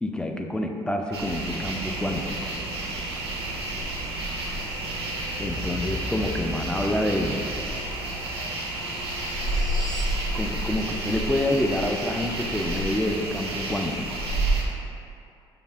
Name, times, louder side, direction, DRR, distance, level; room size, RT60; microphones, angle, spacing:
voice 1, 0.0-2.4 5.4-7.4 10.3-14.2, left 1 dB, 5° left, 3 dB, 0.3 m, -27 dB
sound 1, 1.1-14.6, right 2 dB, 90° right, 0.4 m, -30 dB
sound 2, 5.3-10.2, left 2 dB, 30° left, 1.5 m, -38 dB
4.9 x 2.4 x 2.3 m, 2.6 s
figure-of-eight pair, 50°, 13 cm